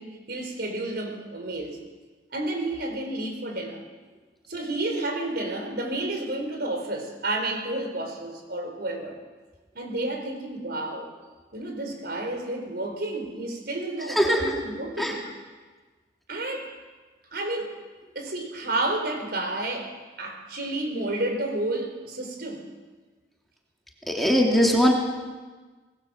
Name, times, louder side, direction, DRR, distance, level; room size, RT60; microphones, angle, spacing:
voice 1, 0.0-1.8 2.3-3.8 4.5-9.1 9.7-11.1 11.5-15.2 16.3-16.7 17.3-17.8 18.1-22.6, right 2 dB, 60° right, 3 dB, 5.0 m, -31 dB
voice 2, 14.1-14.5 15.0-15.2 24.0-24.9, equal, ahead, -1 dB, 2.9 m, -21 dB
25.5 x 20.0 x 7.4 m, 1.3 s
head